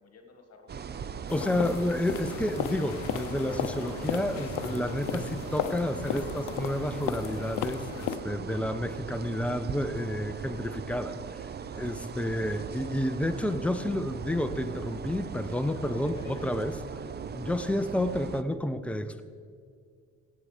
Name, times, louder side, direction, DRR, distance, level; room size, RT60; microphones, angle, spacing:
voice 1, 0.0-1.2 3.5-4.0 8.2-8.6 11.6-12.1 15.6-16.6, left 4 dB, 55° left, 5 dB, 1.7 m, -52 dB
sound 1, 0.7-18.4, right 7 dB, 35° right, 0.5 m, -39 dB
sound 2, 1.3-8.2, left 9 dB, 85° left, 0.7 m, -35 dB
voice 2, 1.3-11.1 11.7-16.8 17.3-19.2, left 1 dB, 5° left, 9 dB, 0.7 m, -30 dB
16.0 x 8.0 x 5.0 m, 2.2 s
cardioid pair, 90°, 30 cm